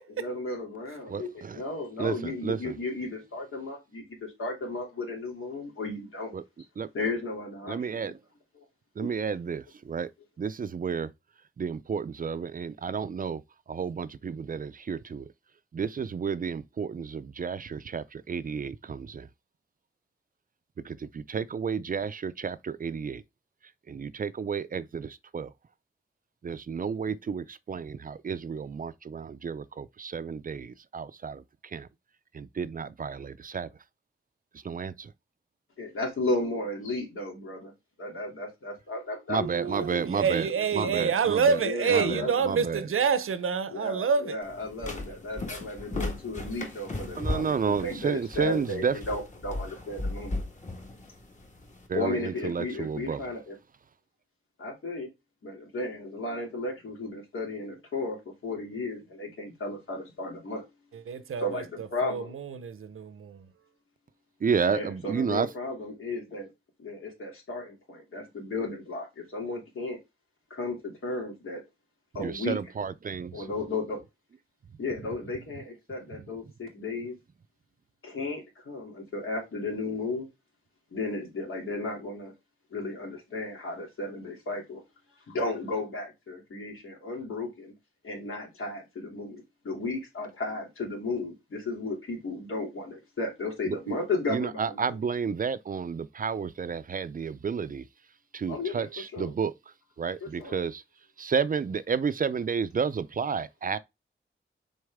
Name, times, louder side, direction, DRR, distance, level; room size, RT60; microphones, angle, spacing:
voice 1, 0.2-6.3 6.9-8.0 8.6-8.7 9.0-9.1 35.8-37.7 38.0-40.0 40.8-40.9 41.6-42.4 43.7-50.4 51.9-53.5 54.6-55.1 55.4-60.6 61.4-62.3 64.7-66.5 66.8-70.0 70.5-71.6 72.1-72.6 73.3-74.0 74.8-77.1 78.0-80.3 80.9-82.3 82.7-84.8 85.3-87.7 88.0-95.0 98.5-98.9 99.1-99.3 100.2-100.6, left 2 dB, 80° left, 2.7 m, -34 dB
voice 2, 1.1-1.6 2.0-2.8 6.3-6.4 6.8-6.9 7.7-8.2 9.0-10.1 10.4-11.1 11.6-13.4 13.7-15.3 15.7-19.3 20.8-23.2 23.9-25.5 26.4-31.9 32.3-33.7 34.6-35.1 39.3-40.5 40.7-41.6 41.9-42.8 47.2-49.0 51.9-53.2 64.4-65.5 72.2-73.5 93.7-94.0 94.3-97.8 98.3-99.5 100.0-100.8 101.2-103.8, right 6 dB, 40° right, 0.4 m, -31 dB
voice 3, 39.3-44.4 60.9-63.5, right 6 dB, 90° right, 0.8 m, -28 dB
sound 1, 44.4-51.9, left 2 dB, 35° left, 1.6 m, -36 dB
6.4 x 4.4 x 3.5 m
wide cardioid pair, 140°, 21 cm